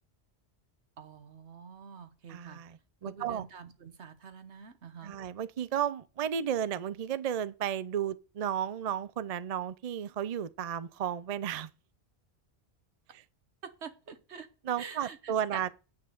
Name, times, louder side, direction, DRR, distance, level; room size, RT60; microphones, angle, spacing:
voice 1, 1.0-2.6 3.0-5.2 13.6-14.5 14.8-15.6, right 6 dB, 80° right, 1.5 m, -46 dB
voice 2, 2.3-3.4 5.0-11.7 13.1-13.2 14.6-15.7, right 9 dB, 45° right, 0.5 m, -33 dB
9.0 x 5.7 x 7.8 m
omnidirectional pair, 1.1 m